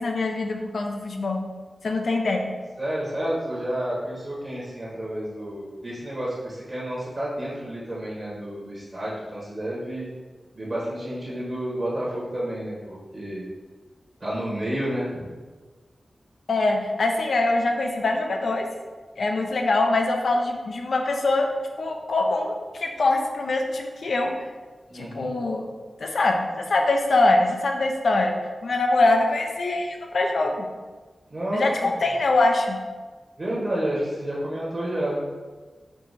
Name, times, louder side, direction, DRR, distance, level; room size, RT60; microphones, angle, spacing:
voice 1, 0.0-1.4 1.8-2.4 16.5-18.7 19.2-24.4 24.9-25.7 26.0-30.6 31.5-32.8, left 2 dB, 70° left, 2 dB, 0.5 m, -23 dB
voice 2, 2.8-10.1 10.5-13.5 14.2-15.2 24.9-25.3 31.3-31.9 33.4-35.3, right 1 dB, 35° right, -6 dB, 1.1 m, -30 dB
4.6 x 2.8 x 4.1 m, 1.3 s
wide cardioid pair, 100°, 0 cm